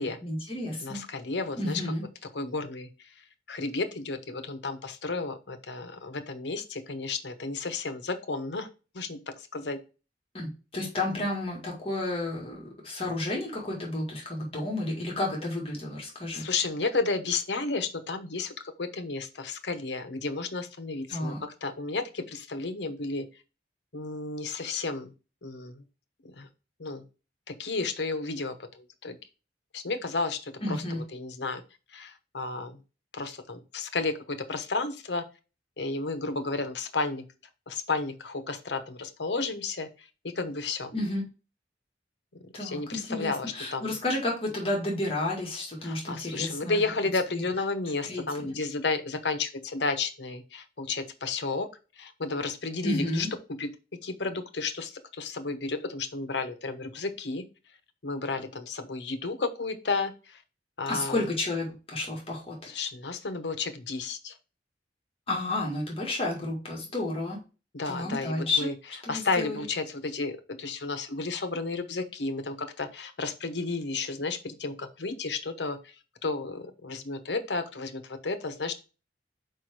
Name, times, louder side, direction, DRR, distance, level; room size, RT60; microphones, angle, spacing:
voice 1, 0.2-1.0 1.6-2.0 10.3-16.5 21.1-21.4 30.6-31.0 40.9-41.2 42.5-46.8 47.3-47.4 48.1-48.5 52.8-53.3 60.9-62.6 65.3-67.4 67.9-68.7 69.0-69.6, left 2 dB, 30° left, -2 dB, 1.9 m, -31 dB
voice 2, 0.8-1.8 2.3-3.1 3.5-8.7 8.9-9.8 16.3-21.3 21.6-23.3 23.9-25.1 25.4-25.8 26.2-26.5 26.8-27.0 27.5-29.2 29.7-31.6 31.9-32.8 33.1-35.2 35.8-37.3 37.7-40.9 42.4-43.9 45.8-51.7 52.0-53.7 54.0-57.4 58.0-60.4 60.8-61.3 62.7-64.3 67.7-68.7 69.1-75.9 76.2-78.7, left 3 dB, 75° left, 9 dB, 0.9 m, -32 dB
4.7 x 4.7 x 4.6 m, 0.32 s
head